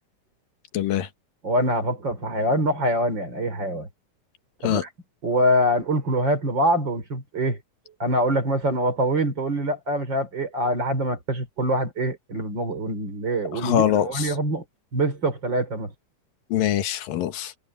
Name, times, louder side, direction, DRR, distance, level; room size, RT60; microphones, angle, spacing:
voice 1, 0.7-1.1 4.6-4.8 13.5-14.3 16.5-17.5, left 11 dB, 80° left, 3.2 m, -23 dB
voice 2, 1.4-3.9 4.6-4.9 5.2-7.6 8.0-14.6 14.9-15.9, right 1 dB, 30° right, 4.6 m, -24 dB
omnidirectional pair, 4.0 m